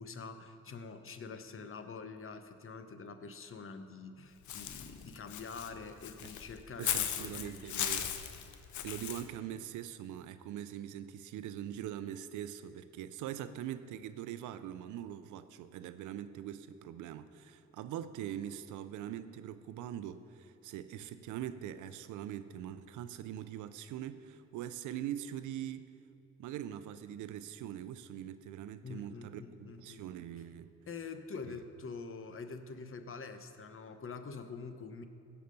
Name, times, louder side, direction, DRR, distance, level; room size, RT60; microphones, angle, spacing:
voice 1, 0.0-7.9 28.8-30.0 30.9-35.0, left 4 dB, 45° left, 9 dB, 1.0 m, -46 dB
Walk footsteps / Bird, 4.5-9.2, left 10 dB, 75° left, 0.8 m, -37 dB
voice 2, 6.8-8.1 8.8-25.9 26.4-29.4 29.8-30.7, right 11 dB, 85° right, 13 dB, 0.6 m, -42 dB
16.0 x 5.8 x 5.3 m, 2.5 s
supercardioid pair, 65°, 30 cm